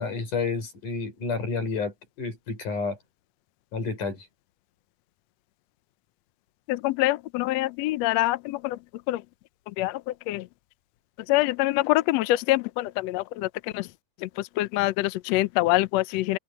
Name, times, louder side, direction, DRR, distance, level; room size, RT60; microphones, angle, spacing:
voice 1, 0.0-3.0 3.7-4.3, left 4 dB, 65° left, 7.2 m, -30 dB
voice 2, 6.7-8.8 9.1-9.2 9.8-10.5 11.3-13.9 14.2-16.4, left 17 dB, 90° left, 1.5 m, -25 dB
open air
omnidirectional pair, 4.0 m